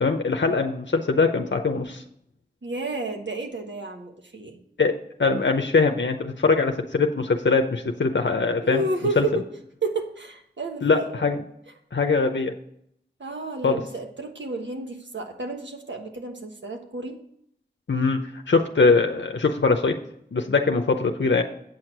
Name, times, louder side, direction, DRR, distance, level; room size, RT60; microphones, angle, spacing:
voice 1, 0.0-2.0 4.8-4.9 5.2-8.8 9.2-9.3 10.8-11.4 11.9-12.5 13.6-13.8 17.9-18.2 18.5-20.0 20.3-21.4, left 4 dB, 80° left, 4 dB, 0.7 m, -22 dB
voice 2, 2.6-4.6 8.6-9.4 9.8-11.2 13.2-17.2, right 2 dB, 80° right, 3 dB, 1.3 m, -31 dB
8.4 x 6.4 x 5.9 m, 0.71 s
wide cardioid pair, 45°, 19 cm